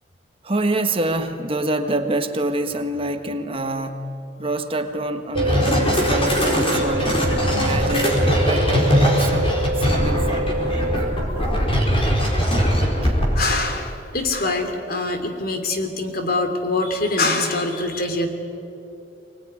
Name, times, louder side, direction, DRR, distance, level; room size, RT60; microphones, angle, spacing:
voice 1, 0.4-4.1 4.4-7.2 7.5-10.5 13.0-13.1, right 2 dB, 30° right, 6 dB, 1.5 m, -26 dB
sound 1, 5.3-13.5, equal, 30° left, 4.5 m, -20 dB
sound 2, 5.4-11.4, right 1 dB, 70° right, 1.1 m, -27 dB
voice 2, 13.3-18.3, left 2 dB, 55° left, 6 dB, 2.9 m, -24 dB
24.0 x 20.0 x 10.0 m, 2.8 s
head